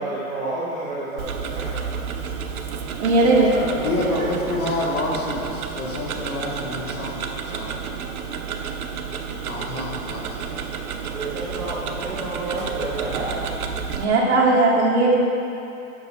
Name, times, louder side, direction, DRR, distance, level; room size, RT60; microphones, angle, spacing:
voice 1, 0.0-1.8 2.1-2.3 3.2-4.3 11.0-13.5, right 2 dB, 10° right, -10 dB, 0.6 m, -30 dB
Tick-tock, 1.2-14.0, right 6 dB, 85° right, 0.8 m, -31 dB
voice 2, 2.9-3.5 13.9-15.1, right 2 dB, 50° right, -4 dB, 1.8 m, -18 dB
voice 3, 3.8-7.2 7.4-7.8 9.5-10.4, left 1 dB, 85° left, -3 dB, 2.0 m, -28 dB
8.4 x 5.9 x 4.4 m, 2.8 s
hypercardioid pair, 155°, 43 cm